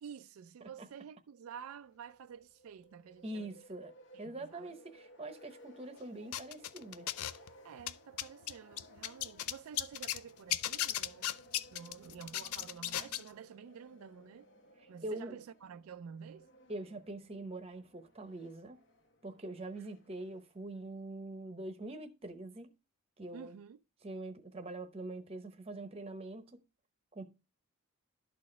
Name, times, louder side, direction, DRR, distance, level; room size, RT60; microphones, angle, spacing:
voice 1, 0.0-3.5 4.1-4.7 7.6-11.3 11.7-14.5 14.9-16.5 19.8-19.9 23.3-23.8, right 7 dB, 75° right, 0.3 m, -50 dB
sound 1, 1.5-20.6, equal, 55° left, 1.0 m, -61 dB
voice 2, 3.2-3.9 4.2-7.1 15.0-15.4 16.7-18.8 19.2-22.7 23.2-23.6 24.0-26.6 27.1-27.3, right 2 dB, 25° right, 0.8 m, -44 dB
sound 2, 6.3-7.5 7.8-10.2 10.5-13.3, left 12 dB, 80° left, 0.4 m, -36 dB
12.5 x 4.2 x 3.2 m
head